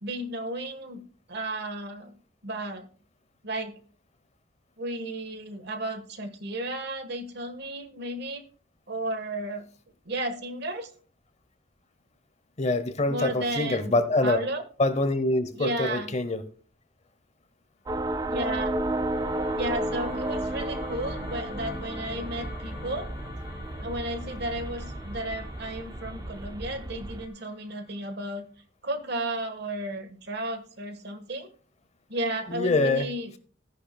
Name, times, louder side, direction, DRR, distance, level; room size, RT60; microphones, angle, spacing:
voice 1, 0.0-1.0 1.3-2.1 2.4-2.9 3.4-3.7 4.8-8.4 8.9-9.6 10.0-10.9 13.1-14.6 15.6-16.1 18.3-18.7 19.5-23.1 23.8-28.5 28.8-31.5 32.1-33.4, right 1 dB, 55° right, 1.5 m, -33 dB
voice 2, 12.6-14.4 14.8-16.4 32.5-33.1, left 2 dB, 35° left, 0.9 m, -25 dB
sound 1, 17.9-27.3, right 1 dB, 20° right, 0.4 m, -33 dB
sound 2, 18.0-28.3, left 3 dB, 50° left, 2.1 m, -45 dB
13.5 x 10.0 x 2.3 m
head